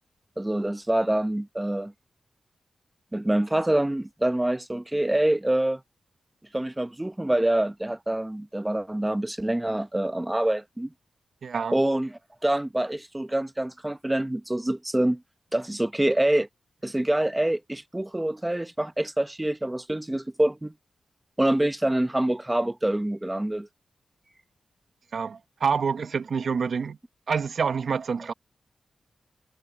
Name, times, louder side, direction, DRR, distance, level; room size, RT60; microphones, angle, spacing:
voice 1, 0.4-1.9 3.1-5.8 6.5-10.9 11.7-15.2 15.5-16.5 16.8-20.7 21.4-23.7, right 1 dB, 10° right, 0.8 m, -26 dB
voice 2, 11.4-11.8 25.1-27.0 27.3-28.3, right 6 dB, 65° right, 0.8 m, -27 dB
wide cardioid pair, 95°, 0 cm